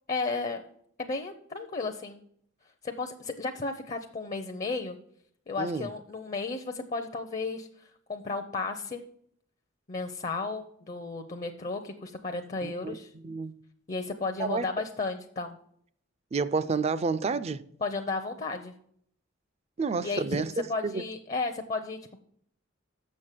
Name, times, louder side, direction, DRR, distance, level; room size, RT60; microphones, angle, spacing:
voice 1, 0.1-0.6 1.0-2.2 2.8-5.0 5.5-9.0 9.9-13.1 13.9-15.6 17.8-18.7 20.0-20.4 20.7-22.2, left 3 dB, 35° left, 0.6 m, -33 dB
voice 2, 5.6-5.9 12.6-13.5 14.4-14.7 16.3-17.7 19.8-20.5 20.8-21.0, right 4 dB, 30° right, 0.4 m, -30 dB
7.0 x 6.4 x 7.4 m
head